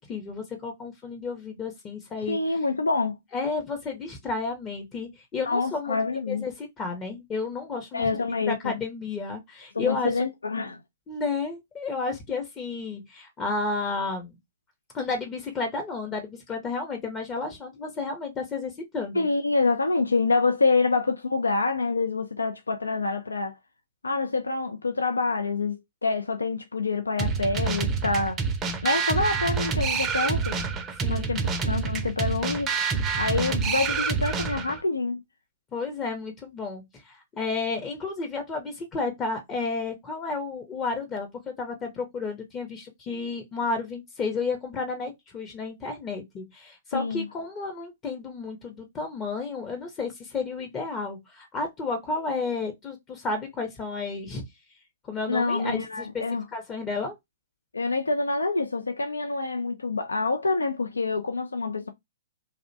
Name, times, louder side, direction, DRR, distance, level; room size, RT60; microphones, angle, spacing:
voice 1, 0.0-2.4 3.3-8.1 8.5-10.1 11.1-14.3 14.9-19.2 31.0-31.3 35.7-54.4 55.1-56.2 56.5-57.2, left 4 dB, 25° left, 0.6 m, -32 dB
voice 2, 2.3-3.2 5.5-6.4 7.9-8.8 9.7-10.8 19.1-23.6 24.0-28.4 28.8-30.6 31.1-32.7 33.2-35.2 46.9-47.3 55.3-56.4 57.7-61.9, left 3 dB, 90° left, 0.3 m, -26 dB
sound 1, 27.2-34.8, right 5 dB, 20° right, 0.4 m, -27 dB
2.5 x 2.0 x 2.5 m
hypercardioid pair, 120°, 0 cm